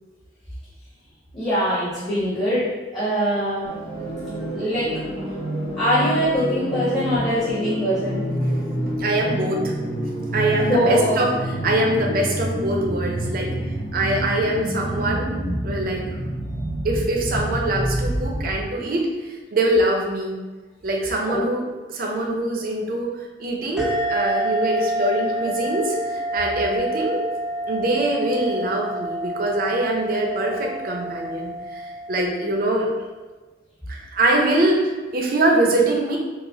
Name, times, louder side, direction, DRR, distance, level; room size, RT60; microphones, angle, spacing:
voice 1, 1.3-3.7 4.5-5.3 5.7-8.2 10.6-11.3 21.2-21.4, equal, 25° left, -11 dB, 1.0 m, -23 dB
sound 1, 3.6-18.6, right 1 dB, 90° left, 1.4 m, -28 dB
voice 2, 8.9-9.7 10.3-11.3 11.6-13.5 13.9-16.0 16.8-20.4 20.8-21.6 21.9-23.1 23.4-27.2 27.7-31.8 32.1-32.9 33.9-36.2, right 1 dB, 55° right, 0 dB, 0.6 m, -23 dB
sound 2, 23.8-32.8, right 1 dB, 5° right, 0.4 m, -28 dB
4.8 x 2.1 x 2.7 m, 1.3 s
head